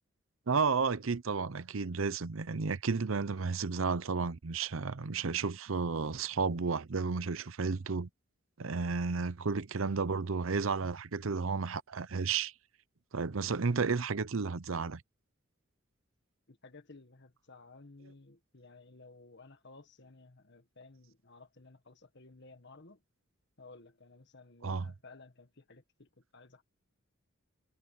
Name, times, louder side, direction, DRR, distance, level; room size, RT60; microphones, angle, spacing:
voice 1, 0.5-8.1 8.6-12.5 13.1-15.0 24.6-24.9, right 4 dB, 75° right, 0.7 m, -32 dB
voice 2, 16.5-23.0 23.6-26.6, left 3 dB, 55° left, 1.8 m, -56 dB
head